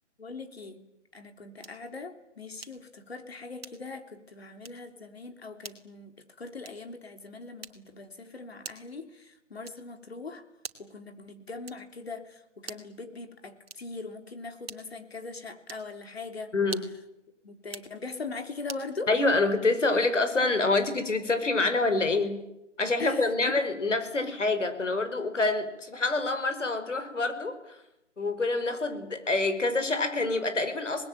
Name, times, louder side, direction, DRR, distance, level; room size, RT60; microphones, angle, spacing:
voice 1, 0.2-0.9 1.1-10.4 10.8-16.5 17.4-19.1 23.0-23.6, left 3 dB, 55° left, 8 dB, 3.5 m, -41 dB
sound 1, 1.6-1.9 2.6-2.9 3.6-4.0 4.6-4.9 5.6-5.9 6.6-7.0 7.6-8.0 8.6-9.0 9.6-10.0 10.6-11.0 11.6-12.0 12.6-13.0 13.6-14.0 14.6-15.1 15.6-15.9 16.6-17.1 17.6-18.0 18.7-18.9, right 4 dB, 55° right, 2.7 m, -45 dB
voice 2, 16.5-16.8 19.1-22.4 22.8-27.8 28.2-31.1, left 3 dB, 80° left, 9 dB, 5.0 m, -26 dB
26.5 x 20.5 x 9.3 m, 0.87 s
figure-of-eight pair, 170°, 36 cm